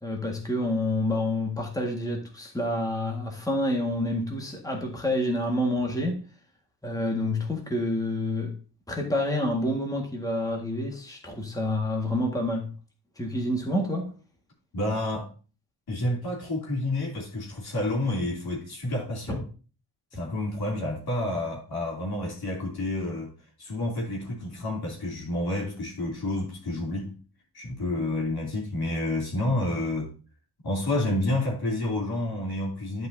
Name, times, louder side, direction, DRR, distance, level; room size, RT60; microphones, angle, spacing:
voice 1, 0.0-6.2 6.8-8.5 8.9-12.7 13.2-14.1 19.3-19.4, left 1 dB, 10° left, 1.6 m, -28 dB
voice 2, 14.7-15.3 15.9-19.4 20.1-23.3 23.6-27.2 27.5-30.1 30.6-33.1, left 1 dB, 60° left, 2.9 m, -29 dB
11.0 x 5.3 x 2.7 m
wide cardioid pair, 115°, 43 cm